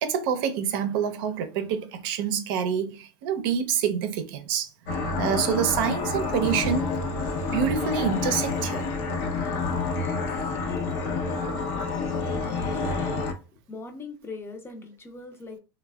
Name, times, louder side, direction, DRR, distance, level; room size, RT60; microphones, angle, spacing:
voice 1, 0.0-4.7 5.2-6.9 7.5-8.9, right 7 dB, 75° right, 0.6 m, -27 dB
sound 1, 4.9-13.3, left 3 dB, 65° left, 0.7 m, -28 dB
voice 2, 10.5-13.2 13.5-15.6, left 4 dB, 20° left, 0.6 m, -42 dB
3.2 x 2.2 x 2.3 m
supercardioid pair, 115°, 12 cm